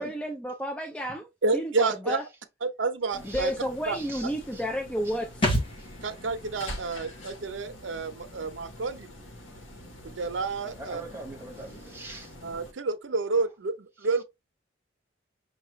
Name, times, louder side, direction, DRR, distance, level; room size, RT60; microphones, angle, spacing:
voice 1, 0.0-1.3 1.5-2.2 3.3-5.3, equal, 5° left, 0.4 m, -31 dB
voice 2, 1.4-2.2 2.6-3.5 3.9-4.0 6.0-9.1 10.0-11.0 12.4-14.2, right 3 dB, 80° right, 0.7 m, -29 dB
sound 1, 3.1-12.7, left 1 dB, 90° left, 1.1 m, -45 dB
voice 3, 3.1-3.6 3.9-4.7 5.0-5.2 5.8-5.9 10.8-12.3, right 2 dB, 10° right, 1.0 m, -43 dB
sound 2, 5.4-8.9 9.2-9.3, equal, 25° left, 1.1 m, -33 dB
5.7 x 2.4 x 3.1 m
head